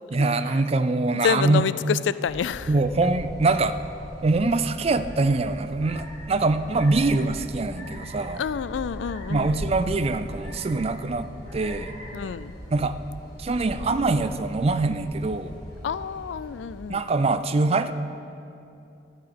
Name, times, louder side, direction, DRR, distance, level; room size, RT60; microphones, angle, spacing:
voice 1, 0.1-1.6 2.7-3.8 4.2-8.4 9.3-11.3 11.5-11.9 12.7-13.0 13.4-15.5 16.9-17.9, right 3 dB, 35° right, 12 dB, 0.4 m, -23 dB
voice 2, 1.2-2.7 8.4-9.6 12.1-12.5 15.8-17.0, left 7 dB, 80° left, 16 dB, 0.3 m, -28 dB
sound 1, 2.2-17.0, equal, 20° left, 3.2 m, -39 dB
12.0 x 5.9 x 8.6 m, 2.7 s
head